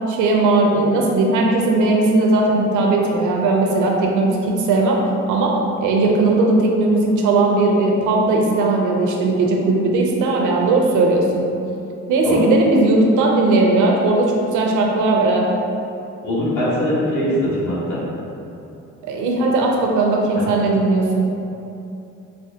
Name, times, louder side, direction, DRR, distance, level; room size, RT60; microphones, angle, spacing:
voice 1, 0.1-5.0 5.3-11.4 12.1-15.5 19.1-21.3, right 2 dB, 80° right, -1 dB, 0.6 m, -17 dB
voice 2, 16.2-18.0, equal, 70° left, -9 dB, 1.4 m, -21 dB
4.3 x 2.1 x 2.7 m, 2.8 s
cardioid pair, 90°, 30 cm